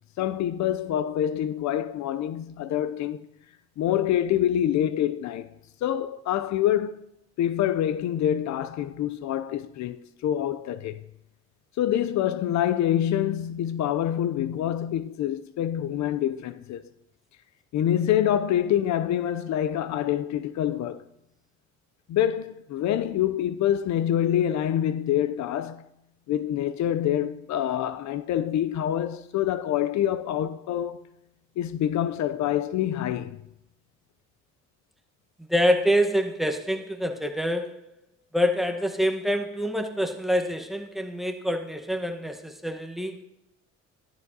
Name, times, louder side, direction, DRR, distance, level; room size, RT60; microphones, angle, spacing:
voice 1, 0.2-3.3 3.8-5.5 5.8-7.1 7.4-11.0 11.8-16.9 17.7-21.0 22.1-25.9 26.3-31.0 31.6-33.4, left 11 dB, 65° left, 0.5 m, -26 dB
voice 2, 35.5-37.7 38.3-43.2, equal, ahead, 1.0 m, -26 dB
12.5 x 12.5 x 2.7 m
cardioid pair, 90°, 30 cm